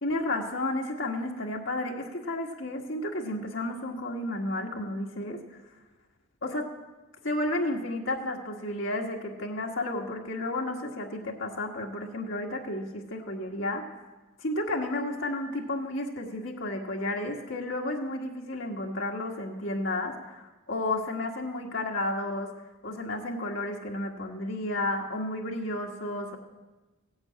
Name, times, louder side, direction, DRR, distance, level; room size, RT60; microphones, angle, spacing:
voice 1, 0.0-5.4 6.4-6.7 7.2-13.8 14.4-22.5 22.8-26.4, left 1 dB, 60° left, -1 dB, 1.7 m, -32 dB
16.0 x 8.8 x 8.7 m, 1.2 s
head